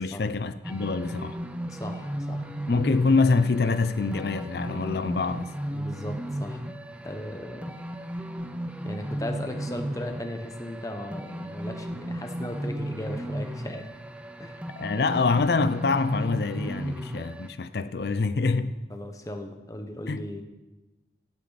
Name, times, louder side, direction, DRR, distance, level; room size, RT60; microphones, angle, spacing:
voice 1, 0.0-1.4 2.7-5.5 14.7-18.7 20.1-20.2, left 4 dB, 70° left, 0.5 m, -25 dB
sound 1, 0.6-17.5, right 1 dB, 5° right, 0.6 m, -35 dB
voice 2, 1.7-2.5 5.7-6.6 7.0-7.8 8.8-13.9 14.4-14.7 18.9-20.4, left 1 dB, 20° left, 1.0 m, -37 dB
16.0 x 8.7 x 4.1 m
head